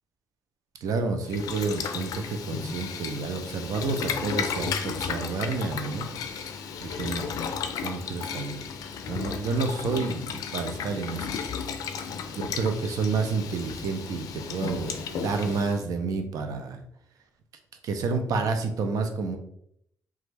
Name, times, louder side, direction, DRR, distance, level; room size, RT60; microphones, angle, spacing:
voice 1, 0.8-6.1 6.8-7.3 7.8-8.7 9.1-11.3 12.4-16.8 17.8-19.4, right 4 dB, 75° right, 6 dB, 0.5 m, -29 dB
Boiling, 1.2-15.8, left 6 dB, 75° left, 0.4 m, -34 dB
3.0 x 2.3 x 3.3 m, 0.72 s
supercardioid pair, 65°, 6 cm